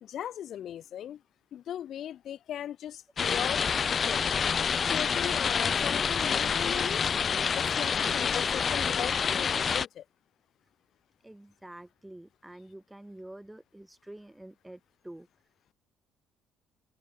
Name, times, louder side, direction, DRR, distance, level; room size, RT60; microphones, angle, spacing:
voice 1, 0.0-1.2 1.5-4.4 4.8-7.0 7.5-10.0, left 10 dB, 45° left, 2.3 m, -38 dB
sound 1, 3.2-9.9, left 6 dB, 25° left, 0.5 m, -27 dB
voice 2, 11.2-15.3, right 1 dB, 5° right, 4.3 m, -47 dB
cardioid pair, 175°, 0 cm